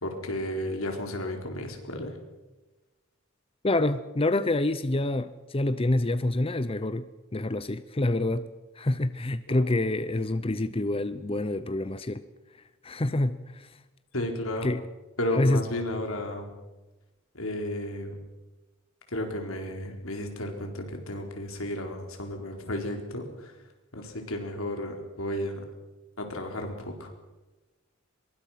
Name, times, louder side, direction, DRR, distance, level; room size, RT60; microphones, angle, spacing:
voice 1, 0.0-2.2 9.5-9.8 14.1-14.7 15.2-16.5 17.3-18.2 19.1-23.5 23.9-25.6 26.2-27.1, left 1 dB, 85° left, 4.4 m, -33 dB
voice 2, 3.6-7.1 7.3-8.5 8.8-12.2 12.8-13.7 14.6-14.8 15.3-15.6, left 2 dB, 25° left, 0.7 m, -27 dB
24.0 x 22.0 x 5.9 m
head